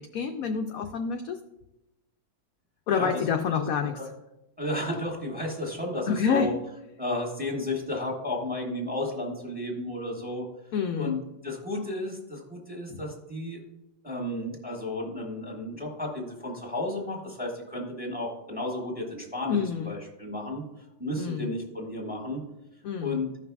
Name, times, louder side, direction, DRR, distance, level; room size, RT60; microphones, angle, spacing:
voice 1, 0.0-1.4 2.9-4.0 6.1-6.6 10.7-11.1 12.9-13.0 19.5-19.9 21.2-21.5 22.8-23.2, left 7 dB, 75° left, 5 dB, 0.8 m, -28 dB
voice 2, 2.9-3.2 3.5-4.1 4.6-6.5 7.0-10.4 11.0-13.6 14.0-20.6 21.0-22.4 23.0-23.3, left 1 dB, 5° right, -1 dB, 1.4 m, -33 dB
15.5 x 5.9 x 2.3 m, 0.94 s
omnidirectional pair, 1.9 m